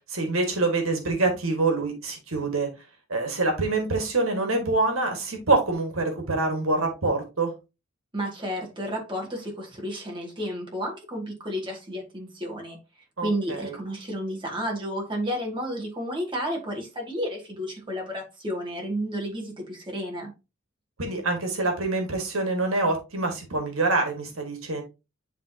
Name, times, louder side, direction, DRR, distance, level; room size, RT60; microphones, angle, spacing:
voice 1, 0.1-2.7 3.1-7.5 13.2-13.8 21.0-24.8, right 3 dB, 75° right, 1.9 m, -25 dB
voice 2, 8.1-12.8 13.2-20.3, equal, 25° right, 2.2 m, -31 dB
10.5 x 3.7 x 2.9 m
head